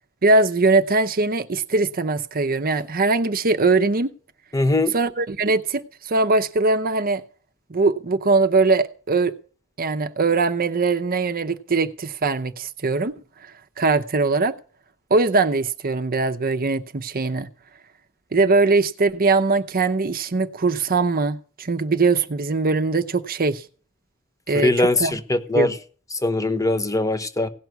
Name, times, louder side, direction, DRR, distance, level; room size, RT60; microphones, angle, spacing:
voice 1, 0.2-4.1 4.9-7.2 7.7-9.3 9.8-13.1 13.4-13.5 13.8-14.5 15.1-17.5 18.3-23.6 24.5-25.1 25.6-25.7, right 3 dB, 45° right, 0.7 m, -21 dB
voice 2, 4.5-4.9 24.6-25.7 26.2-27.5, left 2 dB, 15° left, 1.0 m, -21 dB
17.0 x 5.9 x 9.3 m
head